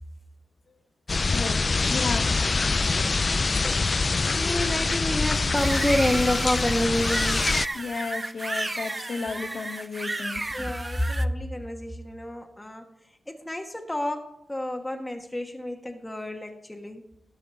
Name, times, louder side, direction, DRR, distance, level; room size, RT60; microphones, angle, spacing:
sound 1, 1.1-7.7, left 3 dB, 40° left, 0.3 m, -25 dB
voice 1, 1.2-1.6 1.9-2.3 7.7-10.4, left 4 dB, 65° left, 5 dB, 1.5 m, -33 dB
voice 2, 4.3-7.4 10.5-12.9 13.3-17.0, left 1 dB, 10° left, 3 dB, 1.3 m, -29 dB
sound 2, 5.5-11.2, right 2 dB, 25° right, 0.6 m, -32 dB
18.5 x 6.5 x 4.2 m, 0.79 s
cardioid pair, 80°, 0 cm